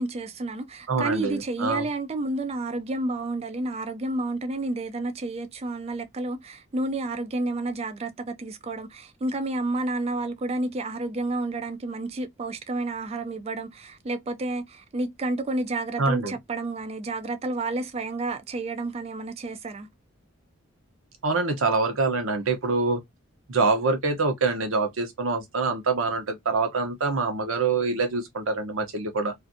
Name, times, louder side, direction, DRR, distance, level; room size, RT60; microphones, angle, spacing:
voice 1, 0.0-19.9, right 2 dB, 30° right, 0.3 m, -30 dB
voice 2, 0.9-1.8 16.0-16.3 21.2-23.0 23.5-29.3, right 3 dB, 75° right, 0.8 m, -25 dB
2.5 x 2.4 x 2.5 m
head